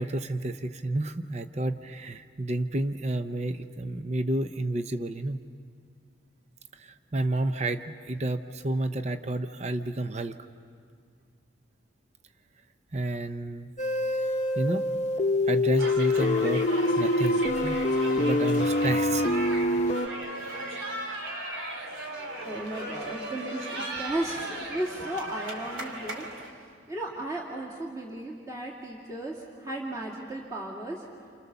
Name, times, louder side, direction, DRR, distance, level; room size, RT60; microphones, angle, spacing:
voice 1, 0.0-5.4 6.7-10.4 12.9-13.7 14.2-14.3 14.6-14.9 15.5-16.7 17.0-17.8 18.2-19.3, right 2 dB, 35° right, 9 dB, 0.7 m, -30 dB
sound 1, 13.8-20.1, left 1 dB, 35° left, 0.8 m, -25 dB
sound 2, 15.8-26.5, right 1 dB, 85° right, 3.3 m, -36 dB
voice 2, 22.4-26.5 26.9-31.1, right 1 dB, 15° right, -4 dB, 2.4 m, -35 dB
29.0 x 28.5 x 6.9 m, 2.1 s
head